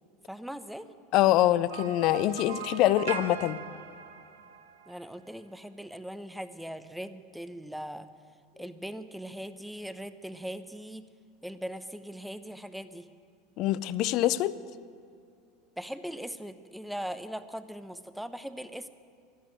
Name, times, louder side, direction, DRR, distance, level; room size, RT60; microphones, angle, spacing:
voice 1, 0.3-0.9 4.9-8.1 8.6-11.0 11.4-13.1 15.8-18.9, equal, ahead, 12 dB, 0.8 m, -40 dB
voice 2, 1.1-3.6 13.6-14.6, left 14 dB, 50° left, 17 dB, 0.5 m, -24 dB
sound 1, 1.7-5.0, right 7 dB, 70° right, 1.0 m, -40 dB
13.0 x 12.0 x 9.0 m, 2.4 s
figure-of-eight pair, 75°, 0 cm